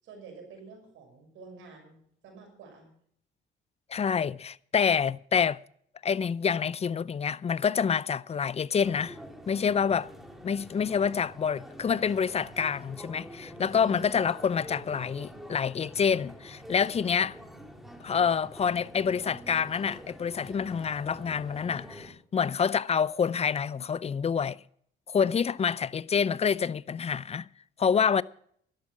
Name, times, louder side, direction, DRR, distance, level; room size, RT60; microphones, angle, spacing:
voice 1, 0.0-2.9, right 4 dB, 90° right, 6.0 m, -50 dB
voice 2, 3.9-5.6 6.0-9.2 9.5-10.1 10.4-17.4 18.0-24.6 25.1-27.5 27.8-28.2, left 6 dB, 30° left, 0.5 m, -27 dB
sound 1, 8.8-22.1, equal, ahead, 2.4 m, -46 dB
12.0 x 11.5 x 6.0 m
cardioid pair, 90°, 20 cm